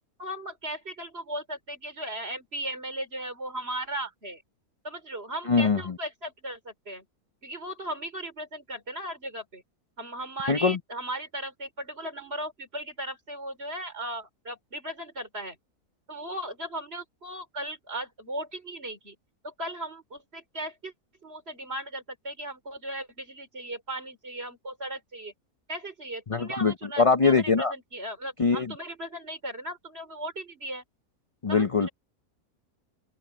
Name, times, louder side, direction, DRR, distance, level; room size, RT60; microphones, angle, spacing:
voice 1, 0.2-4.4 4.8-7.0 7.4-9.6 10.0-15.6 16.1-19.1 19.4-20.9 21.2-25.3 25.7-30.8 31.5-31.9, right 1 dB, 40° right, 4.8 m, -37 dB
voice 2, 5.5-6.0 10.5-10.8 26.3-27.7 28.4-28.7 31.4-31.9, left 4 dB, 40° left, 0.4 m, -23 dB
omnidirectional pair, 1.6 m